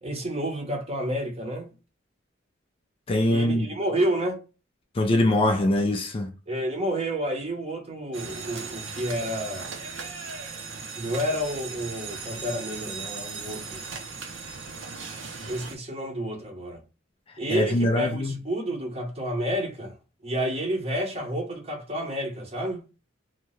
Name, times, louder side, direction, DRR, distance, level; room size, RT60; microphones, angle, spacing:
voice 1, 0.0-1.7 3.3-4.4 6.5-9.7 11.0-13.8 15.5-16.8 17.4-19.9 20.2-22.8, equal, 30° right, 0.8 m, -30 dB
voice 2, 3.1-3.7 5.0-6.3 17.5-18.4, left 1 dB, 30° left, 0.3 m, -23 dB
sound 1, 8.1-15.7, right 5 dB, 70° right, 0.7 m, -37 dB
2.7 x 2.2 x 3.1 m
head